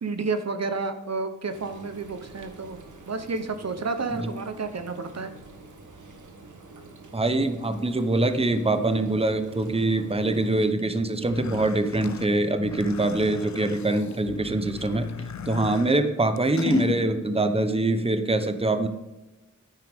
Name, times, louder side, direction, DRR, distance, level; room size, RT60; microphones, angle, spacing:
voice 1, 0.0-2.8 3.1-5.3, right 4 dB, 55° right, 8 dB, 0.9 m, -30 dB
Frying (food), 1.5-10.7, right 3 dB, 70° right, 1.5 m, -47 dB
voice 2, 7.1-15.0 15.5-18.9, right 2 dB, 20° right, 9 dB, 0.9 m, -24 dB
Scissors, 9.2-15.3 15.9-17.0, left 5 dB, 45° left, 1.6 m, -35 dB
sound 1, 11.2-16.8, left 6 dB, 60° left, 0.7 m, -39 dB
10.0 x 9.5 x 3.6 m, 1.1 s
cardioid pair, 45°, 31 cm